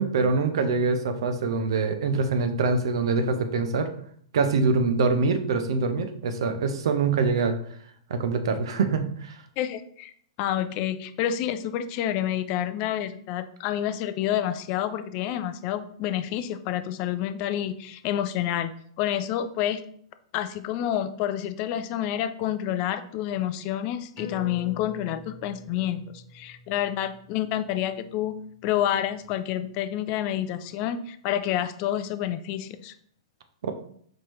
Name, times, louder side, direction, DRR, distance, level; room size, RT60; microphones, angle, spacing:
voice 1, 0.0-3.9 4.3-7.6 8.1-9.3 33.6-33.7, right 4 dB, 70° right, 8 dB, 0.6 m, -24 dB
voice 2, 9.6-10.1 10.4-18.7 19.0-19.8 20.3-28.3 28.6-32.9, left 11 dB, 40° left, 11 dB, 0.3 m, -28 dB
sound 1, 24.2-29.1 29.5-29.6, left 3 dB, 25° left, 1.2 m, -46 dB
4.4 x 3.0 x 3.0 m, 0.62 s
hypercardioid pair, 125°, 3 cm